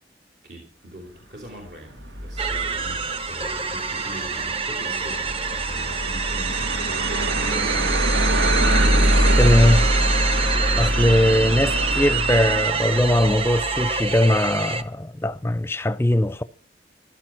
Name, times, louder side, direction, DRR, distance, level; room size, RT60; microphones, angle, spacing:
voice 1, 0.4-8.3, equal, 65° right, 3.5 m, -42 dB
sound 1, 2.0-14.2, right 1 dB, 90° right, 1.8 m, -24 dB
sound 2, 2.4-14.8, right 4 dB, 30° right, 1.0 m, -26 dB
voice 2, 9.3-9.9 10.8-16.4, left 1 dB, 15° left, 0.6 m, -20 dB
15.0 x 12.0 x 6.1 m
head